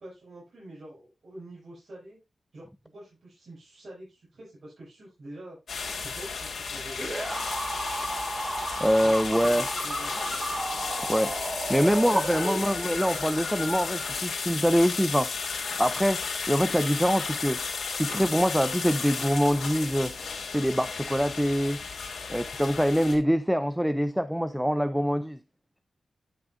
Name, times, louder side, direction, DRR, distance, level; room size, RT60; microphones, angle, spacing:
voice 1, 0.0-2.2 2.5-2.7 2.9-5.6 5.9-7.1 9.0-10.1, right 1 dB, 60° right, 5.8 m, -46 dB
sound 1, 5.7-23.2, left 5 dB, 80° left, 2.6 m, -34 dB
sound 2, 7.0-13.0, right 1 dB, 20° right, 1.5 m, -33 dB
voice 2, 8.8-9.7 11.1-11.4 11.7-15.3 15.8-17.6 17.9-20.1 20.5-21.8 22.3-25.4, equal, 5° right, 0.5 m, -24 dB
10.5 x 6.2 x 2.5 m
cardioid pair, 65°, 0 cm